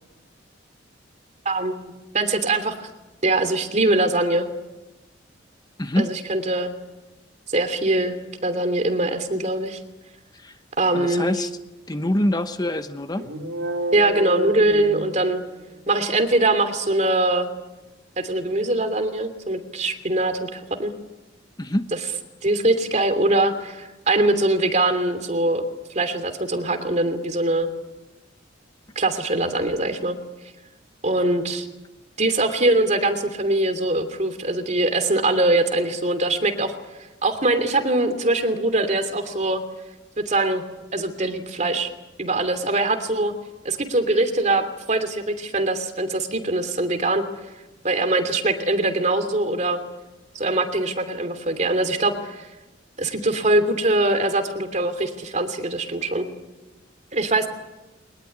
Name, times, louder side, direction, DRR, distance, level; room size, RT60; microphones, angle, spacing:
voice 1, 1.4-1.8 2.1-2.9 3.2-4.5 6.0-6.7 7.5-8.2 8.4-9.8 10.8-11.3 13.9-15.4 15.9-17.5 18.2-20.9 22.4-25.6 25.9-27.7 28.9-30.2 31.0-31.7 32.2-36.7 37.2-39.6 40.3-40.6 40.9-41.9 42.2-43.3 43.6-47.2 47.8-49.8 50.3-52.5 53.0-56.3 57.1-57.5, right 2 dB, 40° right, 9 dB, 2.9 m, -22 dB
voice 2, 5.8-6.1 10.3-10.6 10.9-11.5 11.9-13.3 21.6-21.9, left 1 dB, 20° left, 9 dB, 0.9 m, -25 dB
sound 1, 13.2-15.7, right 1 dB, 85° right, 3.6 m, -29 dB
23.5 x 20.0 x 10.0 m, 1.0 s
head